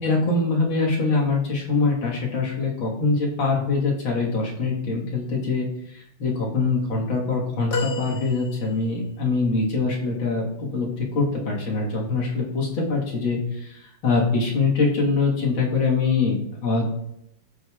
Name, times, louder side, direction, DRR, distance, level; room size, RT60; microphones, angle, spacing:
voice 1, 0.0-16.9, left 3 dB, 75° left, -2 dB, 2.3 m, -24 dB
sound 1, 7.7-9.1 9.9-10.0, left 2 dB, 60° left, 1.5 m, -32 dB
14.0 x 5.2 x 2.3 m, 0.76 s
omnidirectional pair, 2.2 m